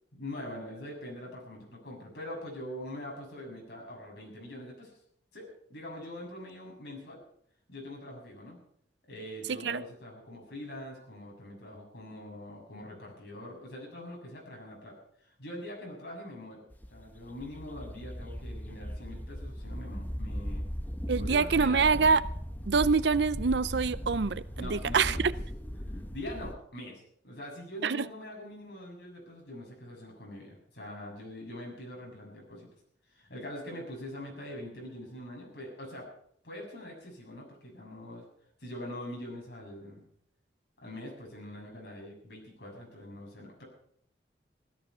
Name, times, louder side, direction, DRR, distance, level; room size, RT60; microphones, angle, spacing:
voice 1, 0.1-4.9 5.3-7.2 7.7-8.6 9.1-16.6 16.9-20.7 21.2-22.0 24.6-25.2 25.7-32.7 33.1-36.1 36.4-38.2 38.6-40.0 40.8-43.6, left 1 dB, 65° left, 6.8 m, -43 dB
voice 2, 9.5-9.8 21.1-22.2 22.7-25.2 27.8-28.1, right 5 dB, 70° right, 0.6 m, -26 dB
sound 1, 16.7-26.5, equal, 10° left, 1.0 m, -38 dB
16.5 x 13.0 x 5.6 m
head